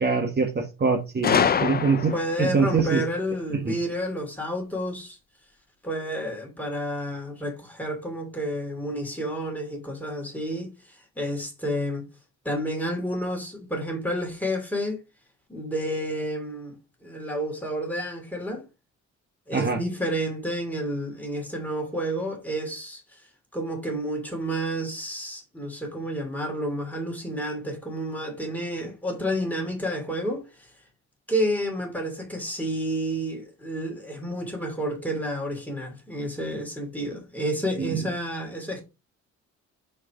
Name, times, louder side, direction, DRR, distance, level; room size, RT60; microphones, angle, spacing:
voice 1, 0.0-2.1 2.4-3.0 3.6-3.7 19.5-19.8 37.8-38.0, right 4 dB, 35° right, 1.4 m, -24 dB
Gunshot gunfire, 1.2-2.5, left 7 dB, 30° left, 0.6 m, -24 dB
voice 2, 2.1-5.2 5.8-12.1 12.4-15.0 15.5-16.8 17.0-18.6 19.5-23.2 23.5-30.7 31.3-38.8, equal, 5° left, 2.8 m, -30 dB
4.7 x 4.6 x 5.8 m
cardioid pair, 90°, 30 cm